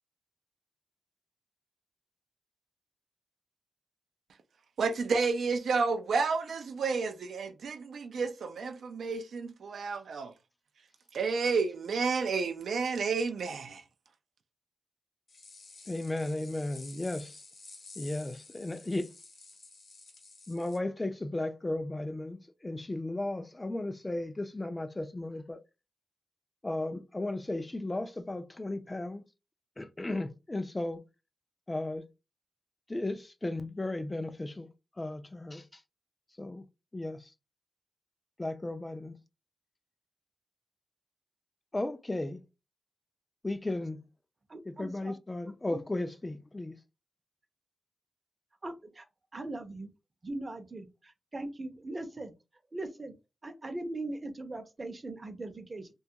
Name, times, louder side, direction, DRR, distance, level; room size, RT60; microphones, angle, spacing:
voice 1, 4.8-10.3 11.1-13.8, right 4 dB, 80° right, 0.3 m, -31 dB
sound 1, 15.3-20.8, left 3 dB, 65° left, 0.8 m, -51 dB
voice 2, 15.9-17.4 18.0-19.1 20.5-25.6 26.6-29.2 29.8-31.0 31.7-32.1 32.9-34.7 35.0-35.8 36.4-36.6 36.9-37.3 38.4-39.2 41.7-42.4 43.4-44.0 44.7-46.7, left 2 dB, 20° left, 0.3 m, -35 dB
voice 3, 44.5-45.1 48.6-49.1 49.3-49.9 50.2-52.3 52.7-53.1 53.4-55.9, right 2 dB, 35° right, 0.6 m, -40 dB
2.3 x 2.3 x 2.7 m
cardioid pair, 80°, 0 cm